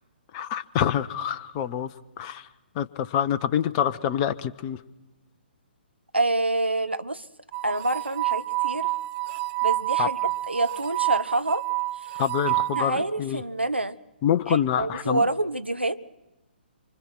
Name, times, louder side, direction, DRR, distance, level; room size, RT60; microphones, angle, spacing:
voice 1, 0.3-1.9 2.2-2.5 2.7-4.8 10.0-10.1 12.2-13.4 14.2-15.3, left 9 dB, 25° left, 11 dB, 0.8 m, -26 dB
voice 2, 6.1-7.2 7.6-8.9 9.6-10.2 10.5-11.6 12.8-13.9 14.5-16.0, right 2 dB, 80° right, 12 dB, 1.0 m, -27 dB
sound 1, 7.5-12.8, right 19 dB, 25° right, 1.1 m, -28 dB
25.5 x 24.5 x 6.2 m, 1.0 s
figure-of-eight pair, 130°, 6 cm